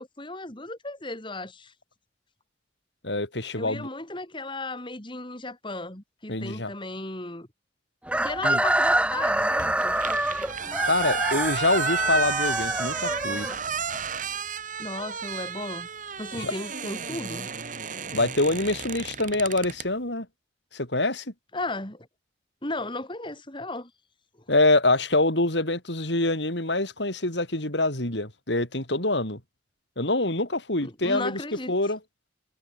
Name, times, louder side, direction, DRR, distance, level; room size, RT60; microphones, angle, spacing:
voice 1, 0.0-1.7 3.5-7.5 8.2-10.0 14.8-15.9 16.2-17.5 21.5-22.1 22.6-23.9 30.8-31.7, left 2 dB, 30° left, 4.1 m, -35 dB
voice 2, 3.0-3.9 6.3-6.7 8.4-8.6 10.8-13.5 16.4-16.5 18.1-20.3 20.7-21.3 24.5-29.4 30.0-31.4 31.7-32.0, left 2 dB, 80° left, 6.3 m, -25 dB
Chicken rooster, 8.1-14.0, right 1 dB, 5° right, 4.3 m, -26 dB
sound 1, 9.6-19.9, right 6 dB, 45° right, 4.1 m, -33 dB
head